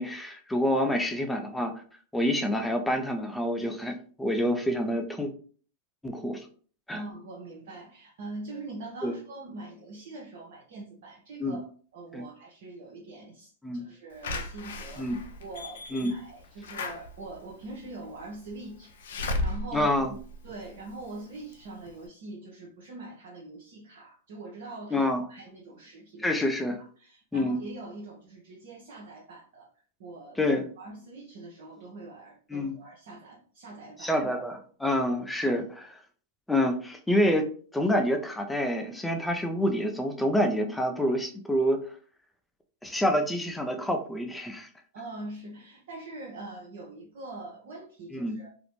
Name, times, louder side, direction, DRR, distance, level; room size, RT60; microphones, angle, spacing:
voice 1, 0.0-1.7 2.1-5.3 6.0-6.5 6.9-7.0 9.0-9.1 11.4-11.6 12.1-12.3 13.6-13.8 15.0-15.2 15.9-16.1 19.7-20.1 24.9-25.2 26.2-26.8 27.3-27.6 30.4-30.7 32.5-32.7 34.0-36.0 36.5-37.5 37.7-41.8 42.8-44.7 48.1-48.4, left 1 dB, 5° left, 4 dB, 0.4 m, -27 dB
voice 2, 6.9-18.9 19.4-19.9 20.4-26.4 27.0-29.7 30.0-30.4 30.8-34.1 44.9-48.5, right 2 dB, 70° right, -3 dB, 0.7 m, -43 dB
Slam / Alarm, 14.2-21.1 21.5-21.6 21.9-22.0, left 2 dB, 75° left, 0.4 m, -36 dB
2.5 x 2.0 x 3.0 m, 0.44 s
hypercardioid pair, 115°, 0 cm